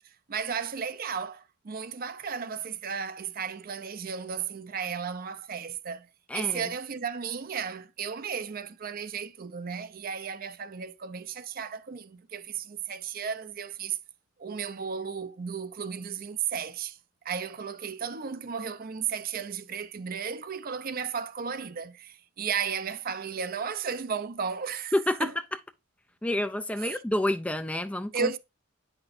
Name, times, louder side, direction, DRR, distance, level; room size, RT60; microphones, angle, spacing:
voice 1, 0.0-6.1 6.3-14.0 14.4-17.0 17.2-24.9 25.2-25.3 26.8-27.0 28.1-28.4, right 6 dB, 45° right, 0.5 m, -34 dB
voice 2, 6.3-6.7 24.9-25.3 26.2-28.4, left 1 dB, 5° left, 0.3 m, -28 dB
8.8 x 5.9 x 2.5 m
head